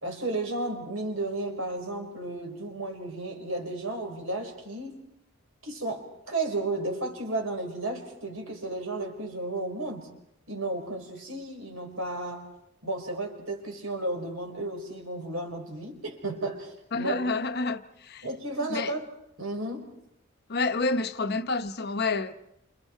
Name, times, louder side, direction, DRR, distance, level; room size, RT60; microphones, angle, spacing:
voice 1, 0.0-5.1 5.6-10.1 10.5-12.5 12.8-17.1 18.2-19.1 19.4-19.9, right 2 dB, 80° right, 5.2 m, -33 dB
voice 2, 16.9-18.3 18.7-19.0 20.5-22.3, left 3 dB, 50° left, 0.9 m, -29 dB
29.5 x 28.0 x 4.6 m
head